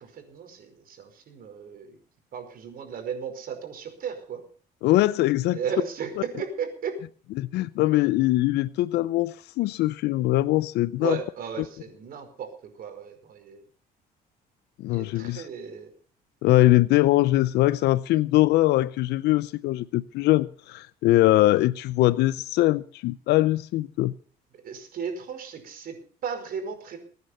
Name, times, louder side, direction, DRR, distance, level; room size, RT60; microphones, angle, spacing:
voice 1, 0.0-2.0 2.3-4.4 5.5-6.1 6.4-7.0 11.0-12.5 12.8-13.6 14.9-15.9 24.6-27.0, right 7 dB, 60° right, 5.0 m, -35 dB
voice 2, 4.8-5.6 7.4-11.2 14.8-15.4 16.4-24.1, left 16 dB, 80° left, 0.6 m, -22 dB
22.5 x 9.6 x 5.6 m
cardioid pair, 110°, 17 cm